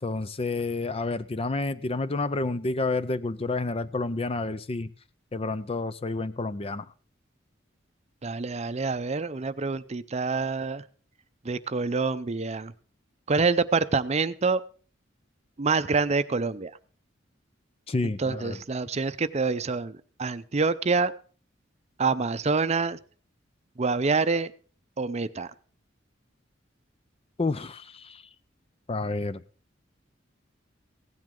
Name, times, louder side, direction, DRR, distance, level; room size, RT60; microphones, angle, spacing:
voice 1, 0.0-4.9 5.3-6.9 17.9-18.6 27.4-28.2 28.9-29.4, left 3 dB, 30° left, 0.6 m, -29 dB
voice 2, 8.2-10.8 11.4-12.7 13.3-14.6 15.6-16.7 18.2-21.1 22.0-23.0 23.8-24.5 25.0-25.5, right 4 dB, 35° right, 0.6 m, -26 dB
16.5 x 10.5 x 3.8 m
head